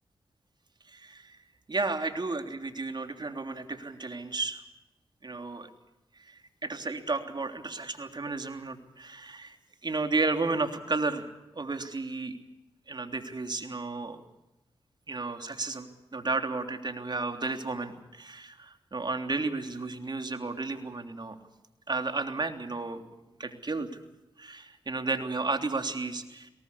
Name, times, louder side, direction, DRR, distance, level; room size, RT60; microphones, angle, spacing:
voice 1, 0.9-1.4 1.7-4.6 5.2-5.7 6.2-9.5 9.8-11.3 11.5-12.4 12.9-14.2 15.1-21.4 21.9-23.0 23.4-23.9 24.4-26.5, right 3 dB, 45° right, 6 dB, 3.3 m, -33 dB
22.5 x 19.5 x 8.5 m, 0.97 s
cardioid pair, 40°, 10 cm